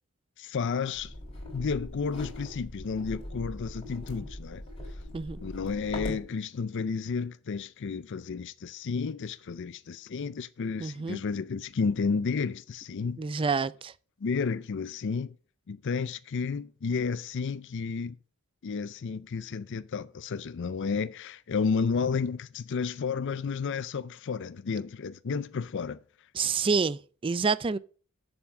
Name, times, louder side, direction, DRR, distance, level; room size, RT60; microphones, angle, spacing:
voice 1, 0.4-1.1 1.5-4.6 5.4-13.2 14.2-15.3 15.7-18.2 18.6-26.0, left 5 dB, 55° left, 0.4 m, -32 dB
sound 1, 0.9-6.3, left 1 dB, 25° left, 3.2 m, -40 dB
voice 2, 10.8-11.2 13.2-13.9 26.3-27.8, right 5 dB, 25° right, 0.4 m, -28 dB
7.1 x 7.1 x 5.4 m
head